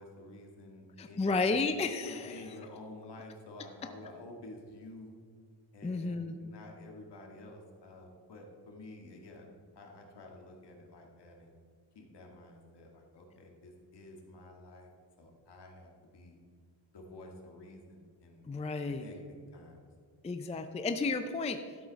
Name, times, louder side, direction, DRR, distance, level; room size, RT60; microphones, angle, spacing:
voice 1, 0.0-1.5 2.0-5.2 5.7-9.5 9.8-11.5 12.0-14.9 15.2-16.4 16.9-18.4 18.8-19.2 19.5-19.9, left 2 dB, 65° left, 1 dB, 1.9 m, -50 dB
voice 2, 1.0-2.4 5.8-6.4 18.5-19.0 20.2-21.6, left 3 dB, 15° left, 8 dB, 0.4 m, -32 dB
12.5 x 8.2 x 4.1 m, 2.1 s
wide cardioid pair, 150°, 44 cm